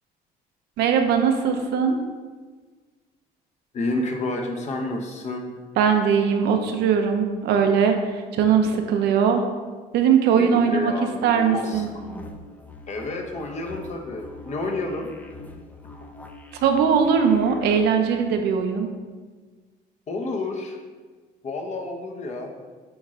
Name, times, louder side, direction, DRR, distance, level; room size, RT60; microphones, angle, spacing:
voice 1, 0.8-2.0 5.8-8.0 8.3-9.4 9.9-10.9 11.2-11.9 16.6-18.9, right 7 dB, 80° right, 4 dB, 0.7 m, -20 dB
voice 2, 3.7-5.5 10.3-11.8 12.9-15.1 20.1-20.8 21.4-22.5, left 2 dB, 45° left, 2 dB, 0.9 m, -29 dB
sound 1, 11.7-17.9, left 2 dB, 10° left, 0.5 m, -43 dB
8.1 x 3.2 x 3.7 m, 1.4 s
cardioid pair, 110°, 17 cm